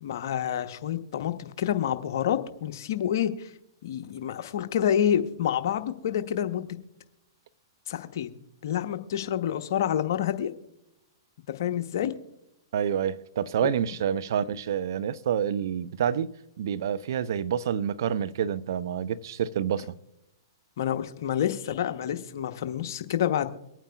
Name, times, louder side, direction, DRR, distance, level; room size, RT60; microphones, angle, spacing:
voice 1, 0.0-3.5 3.8-6.7 7.9-10.5 11.6-12.1 13.6-13.7 20.8-23.5, left 10 dB, 60° left, 0.9 m, -28 dB
voice 2, 12.7-20.0, right 8 dB, 65° right, 0.5 m, -28 dB
24.0 x 9.0 x 2.3 m
hypercardioid pair, 115°, 2 cm